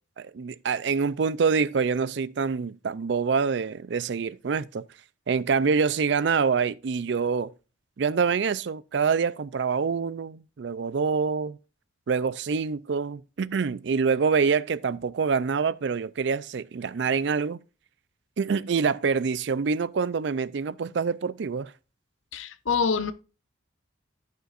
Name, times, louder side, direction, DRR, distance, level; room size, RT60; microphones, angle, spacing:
voice 1, 0.2-4.8 5.3-7.5 8.0-11.6 12.1-17.6 18.4-21.7, right 5 dB, 60° right, 0.4 m, -26 dB
voice 2, 22.3-23.1, left 5 dB, 85° left, 0.8 m, -25 dB
15.5 x 5.5 x 2.5 m
head